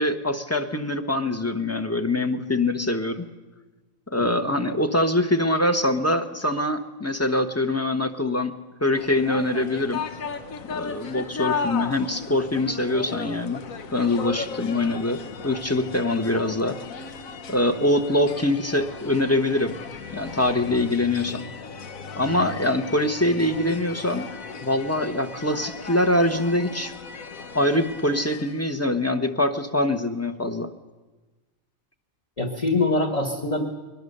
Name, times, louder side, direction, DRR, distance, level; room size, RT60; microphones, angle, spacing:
voice 1, 0.0-3.3 4.1-8.5 8.8-10.1 10.7-13.6 13.9-16.8 17.5-19.8 20.1-21.5 22.2-24.3 24.6-26.9 27.5-30.7, left 1 dB, 15° left, 8 dB, 0.9 m, -24 dB
sound 1, 8.9-28.8, left 5 dB, 85° left, 1.5 m, -36 dB
voice 2, 32.4-33.6, left 2 dB, 30° left, 1 dB, 1.4 m, -24 dB
22.0 x 20.0 x 6.7 m, 1.2 s
omnidirectional pair, 1.4 m